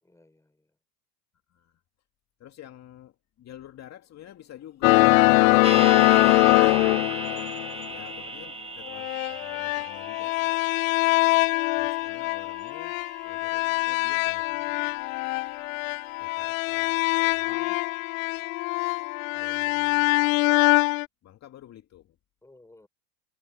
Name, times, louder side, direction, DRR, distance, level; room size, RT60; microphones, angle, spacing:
voice 1, 0.0-0.8 22.4-22.9, left 2 dB, 5° left, 5.0 m, -50 dB
voice 2, 1.5-1.8 2.4-5.2 5.7-6.8 7.9-10.6 11.8-13.0 13.2-14.9 16.2-17.8 19.3-20.8 21.2-22.2, left 12 dB, 30° left, 2.2 m, -49 dB
sound 1, 4.8-8.0 8.9-21.1, left 24 dB, 55° left, 0.5 m, -23 dB
sound 2, 5.6-15.7 16.0-16.1, right 3 dB, 10° right, 2.0 m, -39 dB
hypercardioid pair, 100°, 49 cm